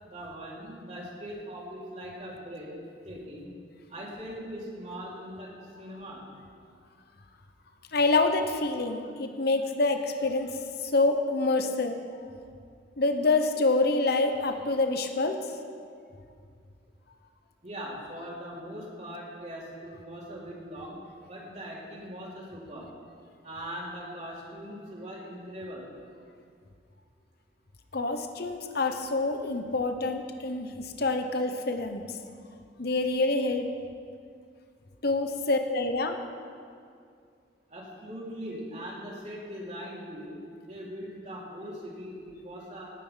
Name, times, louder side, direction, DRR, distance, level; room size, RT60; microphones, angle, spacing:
voice 1, 0.0-2.7 3.0-3.5 3.9-5.5 5.8-6.3 17.6-22.9 23.4-25.9 37.7-42.9, equal, 40° right, -5 dB, 3.2 m, -41 dB
voice 2, 7.9-10.6 10.8-12.0 13.0-15.4 27.9-32.0 32.8-33.7 35.0-36.2, left 3 dB, 60° left, 7 dB, 1.0 m, -26 dB
18.0 x 9.3 x 5.7 m, 2.3 s
head